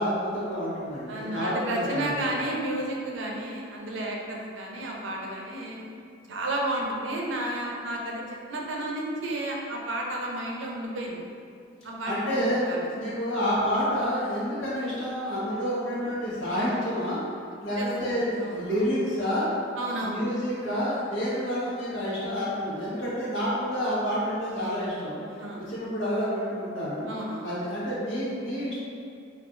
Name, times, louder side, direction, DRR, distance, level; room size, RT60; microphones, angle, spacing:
voice 1, 0.0-2.2 12.1-12.7 12.9-17.2 17.6-19.5 20.0-27.1 27.4-28.8, equal, 65° left, -9 dB, 0.9 m, -29 dB
voice 2, 1.1-5.8 6.3-8.2 8.5-11.3 11.8-12.9 17.8-18.8 19.8-20.2 25.4-25.6 27.1-27.5, right 1 dB, 75° right, -2 dB, 0.5 m, -32 dB
3.8 x 2.4 x 2.4 m, 2.4 s
head